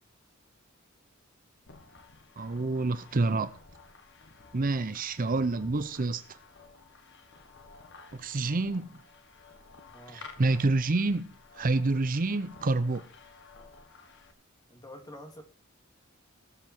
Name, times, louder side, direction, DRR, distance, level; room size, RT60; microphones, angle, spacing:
sound 1, 1.7-14.3, left 4 dB, 60° left, 1.8 m, -53 dB
voice 1, 2.4-3.5 4.5-6.2 8.1-8.9 10.1-13.0, right 3 dB, 40° right, 0.6 m, -28 dB
voice 2, 9.9-10.3 14.7-15.4, left 1 dB, 20° left, 2.6 m, -47 dB
17.5 x 7.7 x 4.5 m
head